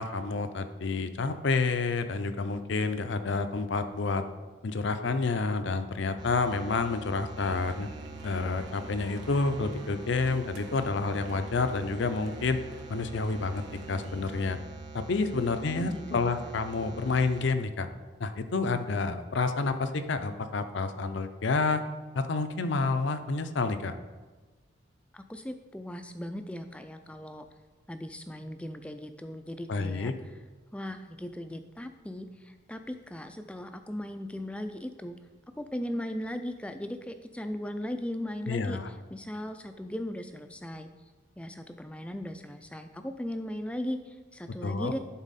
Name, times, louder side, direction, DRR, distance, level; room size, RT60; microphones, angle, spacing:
voice 1, 0.0-4.2 4.6-7.9 8.2-12.6 12.9-13.6 13.9-14.6 14.9-17.9 18.2-21.8 22.1-23.9 29.7-30.1 38.5-38.9 44.6-44.9, left 3 dB, 60° left, 9 dB, 0.5 m, -29 dB
sound 1, 6.2-17.4, right 3 dB, 20° right, 0.7 m, -45 dB
sound 2, 7.4-14.4, right 2 dB, 80° right, 0.9 m, -47 dB
voice 2, 15.5-16.5 25.1-27.5 27.9-30.3 30.7-35.2 35.6-38.8 39.1-40.9 41.4-45.0, equal, 5° left, 8 dB, 0.3 m, -38 dB
11.0 x 4.1 x 4.1 m, 1.3 s
head